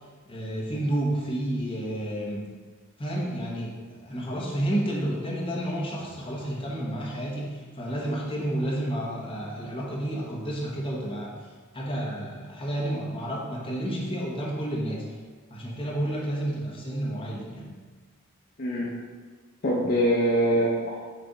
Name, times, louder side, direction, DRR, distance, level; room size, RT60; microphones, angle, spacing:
voice 1, 0.3-2.5 3.0-11.3 11.7-15.0 15.5-17.7, right 1 dB, 25° left, -4 dB, 1.2 m, -30 dB
voice 2, 18.6-18.9 19.6-21.0, equal, 50° left, -4 dB, 0.8 m, -23 dB
7.4 x 3.4 x 4.0 m, 1.4 s
head